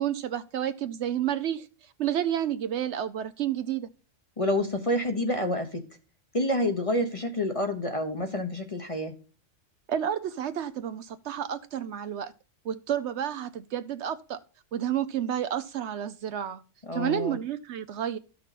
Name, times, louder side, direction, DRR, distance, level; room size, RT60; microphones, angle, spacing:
voice 1, 0.0-1.7 2.0-3.9 9.9-12.3 12.6-14.4 14.7-16.6 16.9-18.2, right 10 dB, 70° right, 0.8 m, -30 dB
voice 2, 4.4-5.8 6.3-9.1 16.9-17.4, left 1 dB, 30° left, 0.9 m, -28 dB
13.0 x 6.0 x 4.1 m
omnidirectional pair, 1.3 m